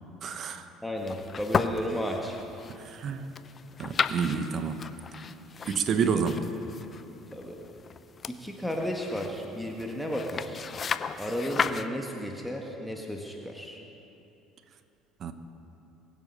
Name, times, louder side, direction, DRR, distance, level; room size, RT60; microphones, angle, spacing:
voice 1, 0.2-0.7 2.7-3.3 3.8-4.9 5.6-6.4 15.2-15.3, right 6 dB, 50° right, 9 dB, 1.0 m, -29 dB
voice 2, 0.8-2.4 6.1-6.4 7.3-7.6 8.3-10.7 11.2-13.8, equal, 5° left, 0 dB, 1.6 m, -33 dB
sound 1, 1.0-11.9, left 6 dB, 40° left, 0.6 m, -35 dB
22.5 x 7.5 x 5.5 m, 2.9 s
hypercardioid pair, 60°, 0 cm